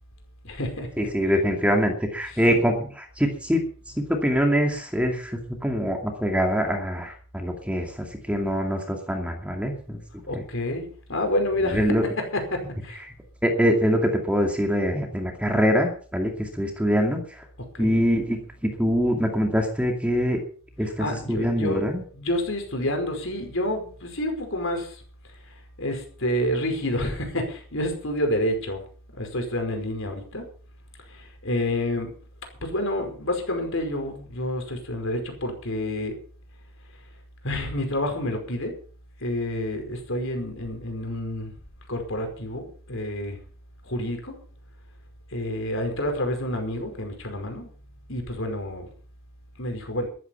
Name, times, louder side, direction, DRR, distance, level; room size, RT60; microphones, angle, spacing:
voice 1, 0.4-1.1 2.3-2.6 10.3-13.0 17.6-17.9 20.8-25.0 25.3-28.8 29.1-30.5 31.0-32.1 32.6-36.2 37.4-38.7 39.2-41.5 41.9-43.4 43.8-44.4 45.3-47.7 48.1-48.9 49.6-50.1, left 1 dB, 60° left, 4 dB, 5.1 m, -29 dB
voice 2, 1.0-2.7 3.2-3.6 4.0-10.0 10.3-10.4 11.7-12.0 13.4-17.2 17.8-20.4 20.8-22.0, equal, 5° right, 3 dB, 2.4 m, -24 dB
13.5 x 12.5 x 5.7 m, 0.44 s
head